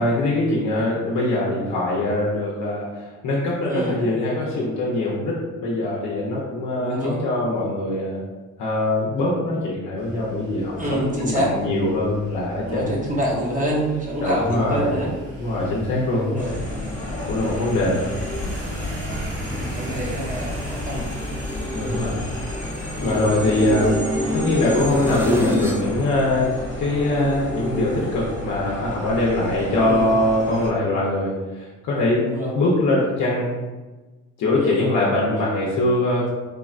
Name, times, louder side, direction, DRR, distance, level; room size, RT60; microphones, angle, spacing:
voice 1, 0.0-8.2 8.6-12.9 14.2-14.9 15.4-16.3 17.3-18.0 21.7-22.2 23.0-24.0 24.3-32.3 32.5-33.5 34.4-36.3, left 1 dB, 70° left, -5 dB, 0.7 m, -22 dB
voice 2, 6.8-7.2 10.8-11.5 12.7-15.1 16.1-16.6 17.4-17.6 19.4-21.0 22.9-23.3 29.8-30.1 32.2-32.6 34.6-34.8, equal, 25° right, -4 dB, 0.9 m, -27 dB
sound 1, 10.0-25.8, right 1 dB, 50° right, 1.2 m, -38 dB
sound 2, 16.4-30.7, left 1 dB, 25° left, 0.8 m, -32 dB
sound 3, 20.6-25.9 26.2-28.1, equal, 10° right, 0.4 m, -28 dB
3.3 x 2.1 x 2.4 m, 1.2 s
cardioid pair, 90°, 30 cm